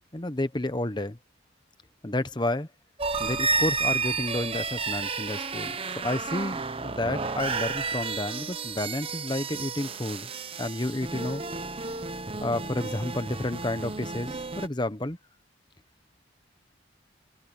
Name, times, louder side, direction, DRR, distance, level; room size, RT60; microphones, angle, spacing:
voice 1, 0.1-1.2 2.0-2.7 3.2-5.7 6.0-10.3 10.6-11.4 12.4-15.2, left 1 dB, 25° left, 1.0 m, -30 dB
sound 1, 3.0-14.7, right 4 dB, 30° right, 1.0 m, -31 dB
head